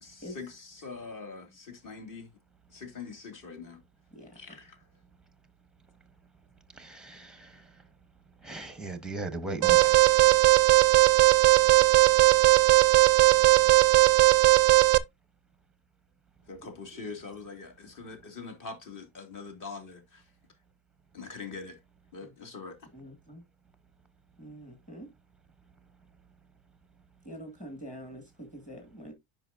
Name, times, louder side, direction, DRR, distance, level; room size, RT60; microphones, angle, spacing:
voice 1, 0.0-2.3 2.7-3.8 4.3-4.9 16.5-20.3 21.1-21.8 22.1-22.8, left 4 dB, 40° left, 2.4 m, -43 dB
voice 2, 6.7-7.7 8.4-10.5, right 3 dB, ahead, 0.8 m, -39 dB
Alarm, 9.6-15.0, right 17 dB, 35° right, 0.4 m, -19 dB
voice 3, 22.9-23.4 24.4-25.1 27.3-29.1, equal, 15° left, 1.9 m, -44 dB
9.6 x 5.5 x 2.6 m
cardioid pair, 145°, 49 cm